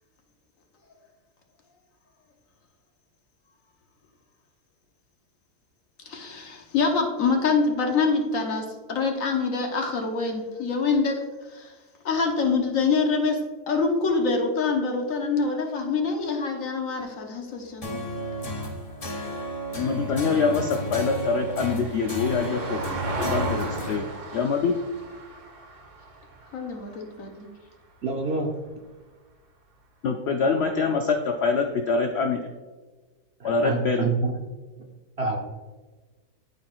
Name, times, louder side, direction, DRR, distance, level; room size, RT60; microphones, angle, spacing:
voice 1, 6.1-11.2 11.5-11.7 12.0-13.4 13.7-18.0 26.5-27.5, left 4 dB, 60° left, 2 dB, 1.3 m, -25 dB
sound 1, 17.8-24.0, equal, 30° left, 0.8 m, -32 dB
Vehicle, 17.8-28.3 30.6-30.7, right 3 dB, 80° right, 1.7 m, -38 dB
voice 2, 19.8-22.8 23.2-24.0 24.3-24.7 30.0-32.5 33.4-34.1, left 4 dB, 75° left, 3 dB, 0.6 m, -25 dB
voice 3, 28.0-28.5 33.4-34.4 35.2-35.4, right 3 dB, 50° right, 1 dB, 0.8 m, -27 dB
12.5 x 4.5 x 2.4 m, 1.3 s
omnidirectional pair, 1.7 m